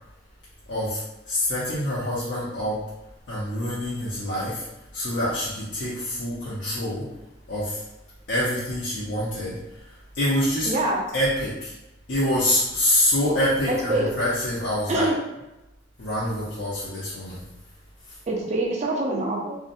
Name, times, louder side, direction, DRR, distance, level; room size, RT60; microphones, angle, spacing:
voice 1, 0.7-2.8 3.3-4.7 4.9-7.1 7.5-7.8 8.3-10.7 11.1-11.7 12.1-15.1 16.0-17.4 18.1-18.2, left 1 dB, 65° left, -8 dB, 0.6 m, -26 dB
voice 2, 10.7-11.0 13.7-14.1 14.9-15.2 18.3-19.6, right 1 dB, 35° right, -1 dB, 0.4 m, -25 dB
2.7 x 2.0 x 2.6 m, 0.94 s
head